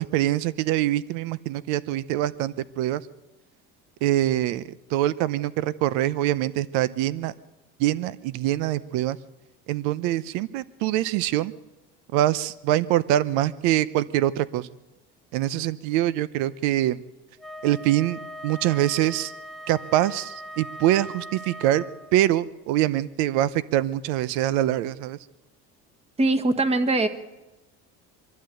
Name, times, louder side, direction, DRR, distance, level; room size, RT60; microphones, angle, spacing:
voice 1, 0.0-3.0 4.0-4.6 4.9-7.3 7.8-9.2 9.7-11.5 12.1-14.7 15.3-17.0 17.6-19.3 19.7-21.8 22.1-25.2, right 13 dB, 80° right, 18 dB, 0.8 m, -24 dB
Wind instrument woodwind instrument, 17.4-22.3, equal, ahead, 0.7 m, -40 dB
voice 2, 26.2-27.1, right 2 dB, 20° right, 8 dB, 1.5 m, -21 dB
25.0 x 12.5 x 9.0 m, 1.1 s
cardioid pair, 140°, 29 cm